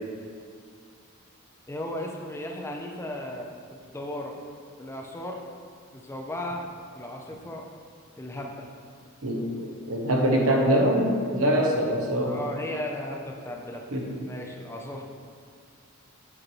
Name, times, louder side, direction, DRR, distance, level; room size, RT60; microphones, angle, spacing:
voice 1, 1.7-3.5 3.9-4.4 4.8-5.4 5.9-6.6 6.9-7.6 8.2-8.7 12.2-13.8 14.2-15.0, left 1 dB, 10° left, 1 dB, 0.5 m, -35 dB
voice 2, 9.2-12.4 13.9-14.0, equal, 70° right, -1 dB, 1.0 m, -24 dB
7.5 x 4.5 x 3.1 m, 2.2 s
head